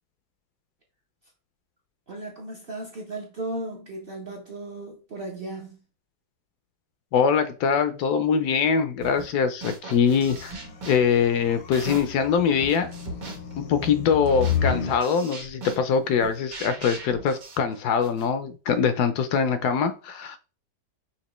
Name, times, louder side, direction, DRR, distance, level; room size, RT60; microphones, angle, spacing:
voice 1, 2.1-5.8, right 2 dB, 45° right, 0.8 m, -36 dB
voice 2, 7.1-10.6 10.9-12.9 13.6-20.4, left 6 dB, 75° left, 1.1 m, -23 dB
sound 1, 9.0-9.3 9.6-12.3 12.6-18.3, right 3 dB, 80° right, 1.8 m, -40 dB
sound 2, 10.1-15.0, left 7 dB, 50° left, 0.8 m, -32 dB
5.9 x 2.8 x 3.0 m
omnidirectional pair, 1.8 m